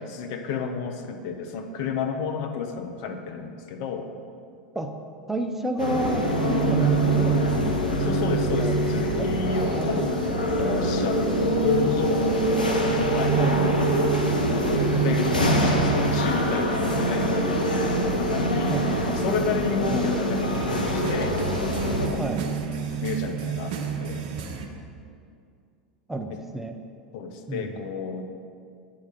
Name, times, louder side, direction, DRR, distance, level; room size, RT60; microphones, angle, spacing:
voice 1, 0.0-4.1 8.0-10.2 10.6-13.8 14.3-18.8 19.1-21.4 22.0-22.3 23.0-24.2 27.1-28.2, left 5 dB, 50° left, 5 dB, 0.8 m, -31 dB
voice 2, 5.3-8.1 8.6-10.3 13.4-13.6 18.7-19.4 19.9-20.1 22.2-22.4 26.1-26.8 27.5-27.7, right 1 dB, 5° right, 5 dB, 0.5 m, -31 dB
sound 1, 5.8-22.1, right 1 dB, 80° left, 0.8 m, -24 dB
sound 2, 9.5-10.4 11.7-12.6 12.9-13.1 14.4-15.8 17.0-18.4 20.5-24.7, right 6 dB, 50° right, 0.8 m, -35 dB
8.8 x 4.7 x 5.5 m, 2.4 s
figure-of-eight pair, 85°, 4 cm